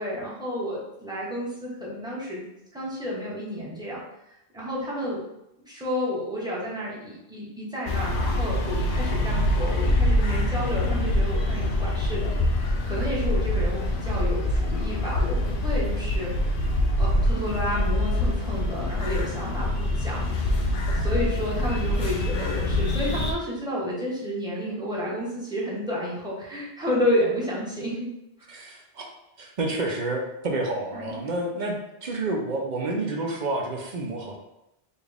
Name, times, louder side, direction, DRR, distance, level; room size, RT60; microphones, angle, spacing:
voice 1, 0.0-2.4 2.7-4.0 4.5-5.2 5.7-16.3 16.7-20.6 20.9-28.1 28.4-28.5 30.9-31.1, equal, 5° right, -7 dB, 1.1 m, -31 dB
sound 1, 7.9-23.3, left 1 dB, 60° left, 0.7 m, -25 dB
voice 2, 28.5-29.0 29.4-34.4, right 2 dB, 50° right, 1 dB, 0.7 m, -29 dB
4.2 x 2.4 x 3.4 m, 0.85 s
omnidirectional pair, 1.1 m